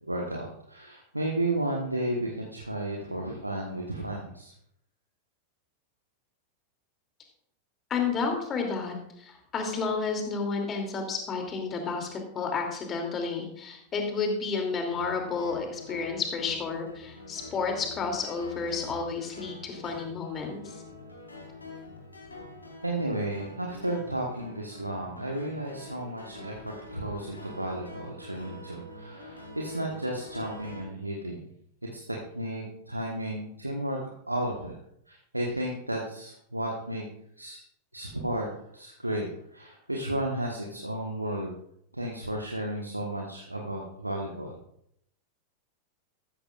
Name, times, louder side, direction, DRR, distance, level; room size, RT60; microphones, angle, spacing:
voice 1, 0.0-4.5 22.8-31.5 31.8-34.0 34.3-34.7 35.1-37.0 37.4-37.6 37.9-38.5 38.7-41.5 41.9-44.5, right 1 dB, 85° right, 0 dB, 1.3 m, -33 dB
voice 2, 7.9-20.8, left 4 dB, 25° left, 2 dB, 2.8 m, -31 dB
sound 1, 14.9-30.8, left 1 dB, 80° left, 3.3 m, -45 dB
13.5 x 13.5 x 2.5 m, 0.72 s
figure-of-eight pair, 90°, 0 cm